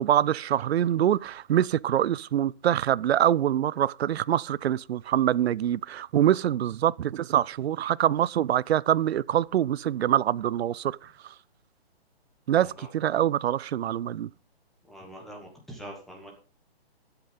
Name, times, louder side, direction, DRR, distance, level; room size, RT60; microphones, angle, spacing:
voice 1, 0.0-11.3 12.5-14.3, right 11 dB, 75° right, 0.5 m, -25 dB
voice 2, 12.6-12.9 14.9-16.3, right 1 dB, ahead, 1.3 m, -44 dB
12.0 x 8.1 x 5.1 m
hypercardioid pair, 170°, 32 cm